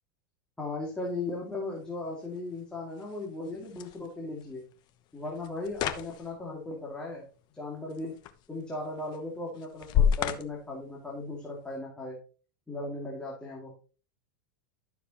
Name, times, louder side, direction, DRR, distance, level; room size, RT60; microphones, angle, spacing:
voice 1, 0.6-4.6 5.1-7.2 7.5-8.1 8.5-12.2 12.7-13.7, left 2 dB, 5° left, -3 dB, 2.3 m, -37 dB
sound 1, 0.8-11.8, left 8 dB, 40° left, 1.0 m, -35 dB
12.0 x 6.7 x 3.0 m, 0.37 s
supercardioid pair, 140°, 12 cm